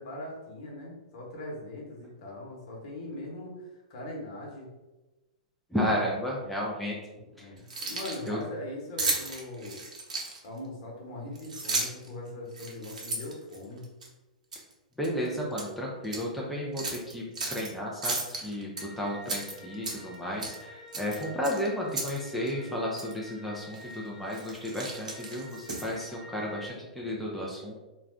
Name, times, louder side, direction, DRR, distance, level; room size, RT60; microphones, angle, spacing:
voice 1, 0.0-4.7 7.3-9.8 10.4-13.8, left 1 dB, 55° left, -2 dB, 1.1 m, -41 dB
voice 2, 5.7-7.0 7.4-7.5 8.3-8.4 15.0-17.2 17.5-27.7, equal, ahead, -4 dB, 0.5 m, -33 dB
Keys jangling, 7.6-8.3 9.0-10.6 11.4-12.1 12.5-14.1 14.5-14.7 15.0-15.7 16.0-16.2 16.8-17.7 18.0-18.8 19.2-20.2 20.4-20.6 20.9-22.2 22.5-22.6 23.0-23.1 23.7-24.0 24.3-26.0, right 3 dB, 75° right, 0.7 m, -34 dB
sound 1, 18.8-26.7, left 1 dB, 75° left, 0.8 m, -49 dB
2.3 x 2.2 x 3.5 m, 1.1 s
hypercardioid pair, 110°, 4 cm